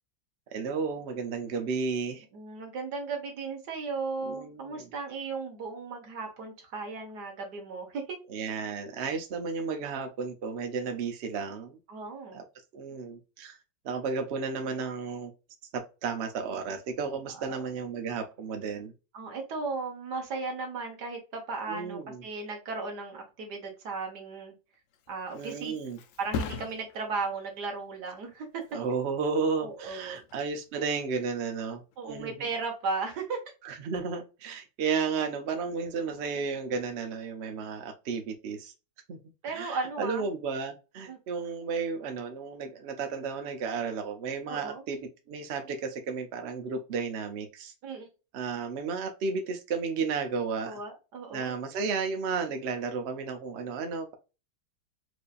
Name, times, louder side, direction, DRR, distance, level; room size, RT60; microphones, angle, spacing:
voice 1, 0.5-2.2 4.2-4.9 8.3-11.8 12.3-12.4 12.7-13.6 13.8-15.3 15.7-18.9 21.7-22.2 25.3-26.0 28.7-32.5 33.6-38.7 39.1-39.2 39.5-47.7 48.3-50.8 51.3-54.1, right 5 dB, 85° right, 0.5 m, -33 dB
voice 2, 2.3-8.2 11.9-12.4 17.3-17.6 19.1-24.5 25.1-25.7 26.2-28.5 29.6-30.2 32.0-33.4 39.4-40.2 41.1-41.2 44.5-44.8 47.8-48.1 50.6-51.5, right 4 dB, 60° right, 1.7 m, -36 dB
Thump thud, 24.7-32.2 32.6-33.0, left 5 dB, 70° left, 1.1 m, -43 dB
4.7 x 2.6 x 2.4 m
omnidirectional pair, 2.1 m